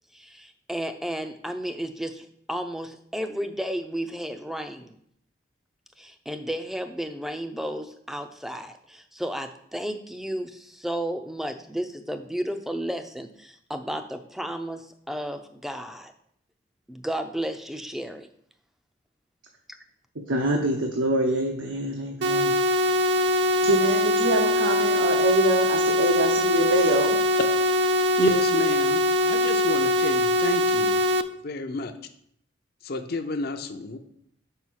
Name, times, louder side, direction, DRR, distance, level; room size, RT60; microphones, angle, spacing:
voice 1, 0.1-5.0 6.0-16.1 16.9-18.3, equal, ahead, 7 dB, 0.5 m, -33 dB
voice 2, 20.3-22.5 23.6-27.2, right 2 dB, 75° right, 0 dB, 0.9 m, -25 dB
sound 1, 22.2-31.2, left 1 dB, 60° right, 0.5 m, -22 dB
voice 3, 28.2-31.1 31.4-31.9 32.8-34.0, left 2 dB, 50° left, 8 dB, 0.6 m, -29 dB
5.6 x 4.9 x 6.3 m, 0.69 s
head